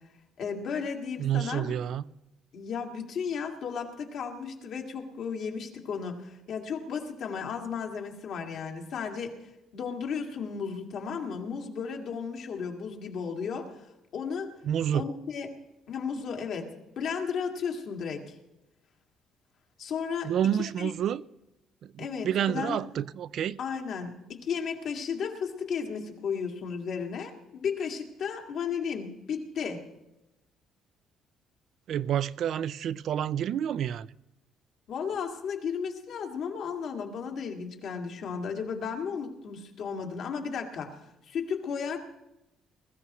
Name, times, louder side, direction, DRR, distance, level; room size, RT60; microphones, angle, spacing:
voice 1, 0.4-1.7 2.5-13.8 14.1-14.5 14.9-15.6 15.9-18.3 19.8-20.3 20.6-20.9 22.0-22.8 23.6-29.8 34.9-42.0, left 6 dB, 60° left, 2.1 m, -34 dB
voice 2, 1.2-2.0 14.6-15.0 20.2-21.2 21.8-23.6 31.9-34.1, right 10 dB, 60° right, 0.4 m, -29 dB
21.0 x 14.0 x 3.1 m
cardioid pair, 115°, 0 cm